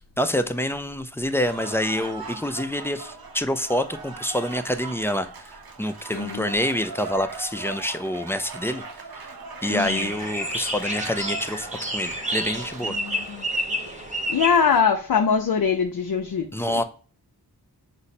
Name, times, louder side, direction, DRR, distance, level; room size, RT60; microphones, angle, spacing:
voice 1, 0.2-8.8 9.2-9.3 9.6-11.7 11.9-13.0 16.5-16.8, left 1 dB, 5° left, 0.4 m, -27 dB
Cheering / Applause, 1.3-13.9, right 4 dB, 65° right, 0.7 m, -40 dB
voice 2, 6.1-6.5 9.7-10.1 12.9-13.5 13.9-14.0 14.3-16.8, left 6 dB, 60° left, 0.5 m, -23 dB
sound 1, 9.6-14.8, equal, 20° right, 0.9 m, -30 dB
5.1 x 2.0 x 4.1 m
wide cardioid pair, 65°, 39 cm